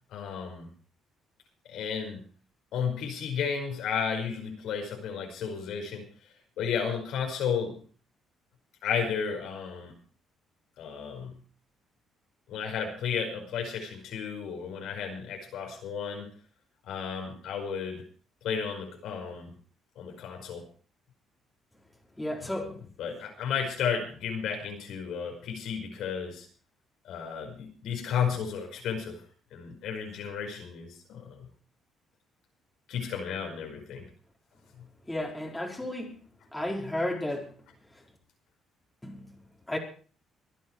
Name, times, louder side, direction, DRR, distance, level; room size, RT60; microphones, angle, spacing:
voice 1, 0.1-0.7 1.7-2.3 2.7-6.1 6.6-7.8 8.8-10.0 10.8-11.4 12.5-16.3 16.9-18.0 18.4-19.5 20.0-20.6 22.4-22.5 23.0-26.5 27.0-29.2 29.5-31.5 32.9-34.1 34.8-34.9, left 7 dB, 75° left, 3 dB, 5.2 m, -33 dB
voice 2, 22.2-22.8 35.1-36.2 36.5-37.5 39.0-39.3 39.7-39.8, left 1 dB, 10° left, 0 dB, 4.5 m, -33 dB
24.5 x 9.8 x 4.6 m, 0.40 s
cardioid pair, 120°, 0 cm